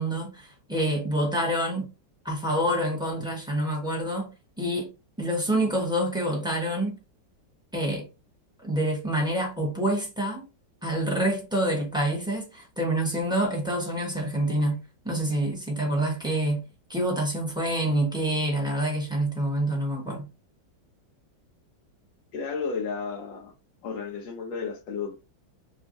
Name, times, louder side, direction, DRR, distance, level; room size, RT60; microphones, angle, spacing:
voice 1, 0.0-1.9 2.2-4.3 4.6-4.9 5.2-6.9 7.7-8.1 8.6-10.5 10.8-16.6 16.9-20.3, right 1 dB, 5° right, 0.8 m, -27 dB
voice 2, 22.3-23.5 23.8-25.2, left 5 dB, 80° left, 1.4 m, -33 dB
5.7 x 2.4 x 2.5 m
omnidirectional pair, 2.0 m